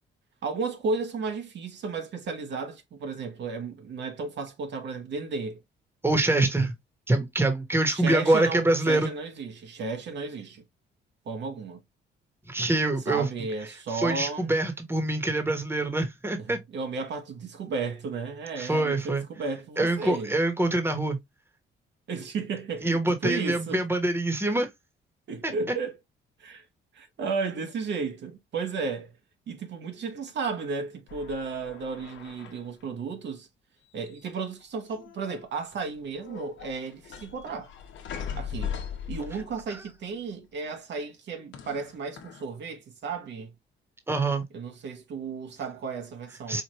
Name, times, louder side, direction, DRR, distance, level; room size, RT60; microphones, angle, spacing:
voice 1, 0.4-5.6 7.9-10.6 11.3-11.8 13.1-14.6 16.4-20.3 22.1-23.8 25.3-25.9 26.4-26.6 26.9-29.1 29.5-33.5 33.9-37.7 38.4-38.7 39.1-43.5 44.5-46.6, right 4 dB, 65° right, 1.0 m, -34 dB
voice 2, 6.0-6.7 7.1-9.1 12.5-13.3 13.9-16.6 18.6-19.2 19.8-21.2 22.8-24.7 25.4-25.5 44.1-44.4 46.5-46.6, right 2 dB, 10° right, 1.1 m, -25 dB
sound 1, 31.1-32.8 34.0-34.6 34.9-35.5 35.9-39.8 41.5-42.4, left 8 dB, 75° left, 0.9 m, -39 dB
4.7 x 2.5 x 2.9 m
cardioid pair, 90°, 20 cm